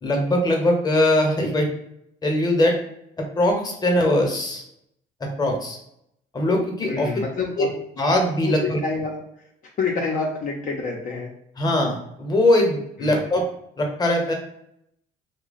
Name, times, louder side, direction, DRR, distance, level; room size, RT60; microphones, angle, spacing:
voice 1, 0.0-1.7 2.2-2.8 3.2-4.6 5.2-5.8 6.3-7.1 7.6-7.7 8.0-8.8 11.6-13.5 13.8-14.3, left 1 dB, 25° left, 2 dB, 0.9 m, -21 dB
voice 2, 6.8-7.7 8.4-8.5 8.8-9.2 9.8-11.3 13.0-13.2, left 4 dB, 50° left, -1 dB, 0.7 m, -27 dB
2.9 x 2.2 x 4.0 m, 0.75 s
cardioid pair, 110°, 17 cm